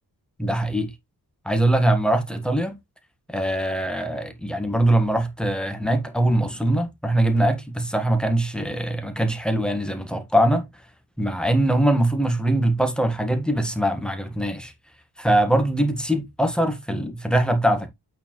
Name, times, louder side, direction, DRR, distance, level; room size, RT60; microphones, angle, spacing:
voice 1, 0.4-0.9 1.4-2.8 3.3-10.7 11.2-14.7 15.2-17.9, right 1 dB, ahead, 1.5 m, -22 dB
8.4 x 4.5 x 3.1 m
wide cardioid pair, 145°, 37 cm